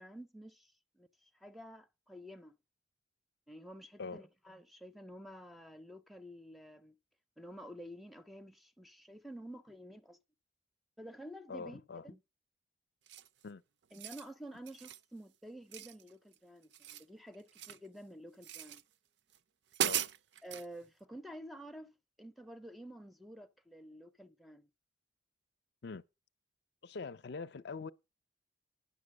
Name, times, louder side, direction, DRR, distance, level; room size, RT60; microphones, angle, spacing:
voice 1, 0.0-2.6 3.5-6.9 7.4-10.2 11.0-12.2 13.9-18.8 20.4-24.7, equal, ahead, 0.5 m, -50 dB
voice 2, 11.5-12.0 13.4-13.6 19.8-20.1 25.8-26.0 26.8-27.9, left 4 dB, 60° left, 0.5 m, -43 dB
sound 1, 13.1-13.4 13.8-14.3 14.7-15.0 15.7-16.4 16.6-17.9 18.4-18.8 19.3-19.4 19.7-20.7, right 10 dB, 65° right, 0.5 m, -38 dB
10.5 x 6.7 x 6.3 m
head